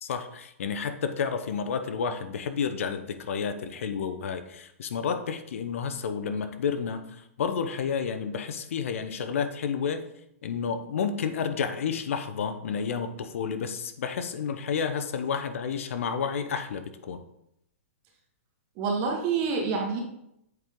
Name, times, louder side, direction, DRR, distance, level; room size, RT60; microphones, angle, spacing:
voice 1, 0.0-7.0 7.4-10.0 10.4-17.2, left 6 dB, 70° left, 9 dB, 0.8 m, -30 dB
voice 2, 18.8-20.0, right 5 dB, 35° right, 1 dB, 1.6 m, -27 dB
7.9 x 4.6 x 3.7 m, 0.80 s
hypercardioid pair, 140°, 7 cm